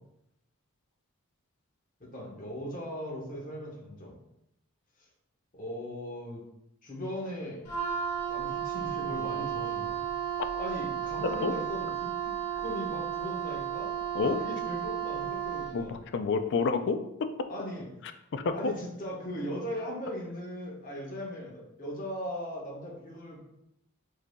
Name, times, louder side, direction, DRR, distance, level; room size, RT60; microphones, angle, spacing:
voice 1, 2.0-4.1 5.0-5.1 5.5-6.4 6.8-7.7 8.3-10.0 10.6-11.9 12.2-13.9 14.2-15.9 17.5-17.9 18.5-23.4, equal, 40° left, -3 dB, 1.1 m, -38 dB
Wind instrument woodwind instrument, 7.6-15.8, right 9 dB, 85° left, 1.4 m, -33 dB
voice 2, 15.7-17.5 18.3-18.7, left 4 dB, 55° left, 9 dB, 0.4 m, -29 dB
5.1 x 4.0 x 2.3 m, 0.84 s
head